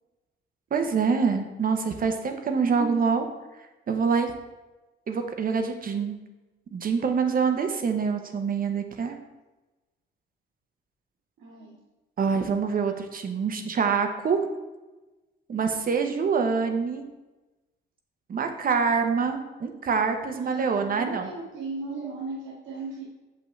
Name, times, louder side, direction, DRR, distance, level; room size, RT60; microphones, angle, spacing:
voice 1, 0.7-3.2 3.9-4.3 5.1-6.2 6.7-9.2 12.2-14.5 15.5-17.0 18.3-21.3, right 5 dB, 45° right, 6 dB, 0.9 m, -25 dB
voice 2, 2.7-3.2 11.4-11.8 20.3-23.0, right 3 dB, 80° right, -6 dB, 1.7 m, -36 dB
6.7 x 5.6 x 3.2 m, 1.1 s
cardioid pair, 90°, 20 cm